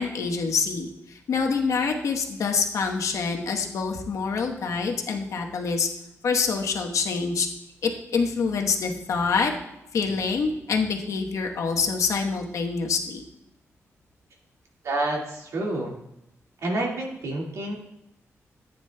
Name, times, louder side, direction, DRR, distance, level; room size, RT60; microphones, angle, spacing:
voice 1, 0.0-5.9 6.2-7.5 7.8-9.5 9.9-13.2, left 5 dB, 80° left, 2 dB, 1.0 m, -26 dB
voice 2, 14.8-16.0 16.6-17.8, right 1 dB, 75° right, -1 dB, 1.9 m, -28 dB
14.5 x 9.2 x 2.2 m, 0.86 s
wide cardioid pair, 130°, 5 cm